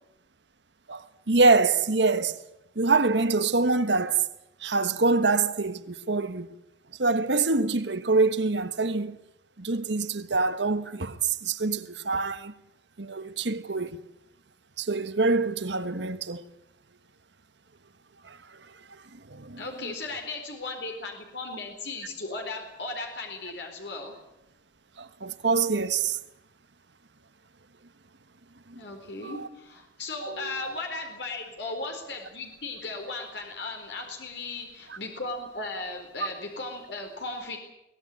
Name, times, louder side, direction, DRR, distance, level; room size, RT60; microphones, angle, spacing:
voice 1, 0.9-2.4 2.7-4.3 4.6-6.5 7.0-9.2 9.6-12.5 13.0-14.0 14.8-16.4 18.2-19.0 19.3-19.9 25.0-26.2 28.7-28.8 29.1-29.5 30.2-30.7, right 3 dB, 85° right, 1.4 m, -25 dB
voice 2, 19.6-24.1 28.8-37.6, left 3 dB, 75° left, 4.2 m, -36 dB
23.0 x 18.5 x 8.6 m
head